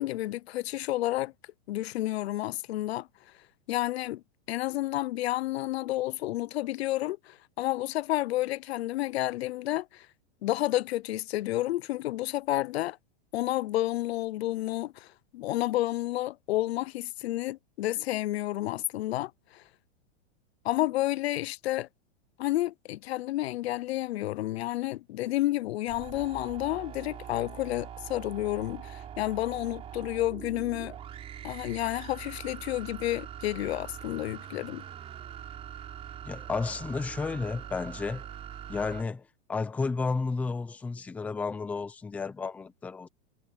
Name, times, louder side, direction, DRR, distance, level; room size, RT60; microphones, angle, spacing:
voice 1, 0.0-1.3 1.7-3.1 3.7-4.2 4.5-10.1 10.4-13.0 13.3-19.6 20.6-21.9 22.4-30.9 31.4-34.8, left 16 dB, 70° left, 0.6 m, -30 dB
sound 1, 25.9-39.0, right 9 dB, 20° right, 3.9 m, -43 dB
voice 2, 36.2-38.3 38.7-43.1, left 4 dB, 5° left, 0.6 m, -32 dB
supercardioid pair, 170°, 33 cm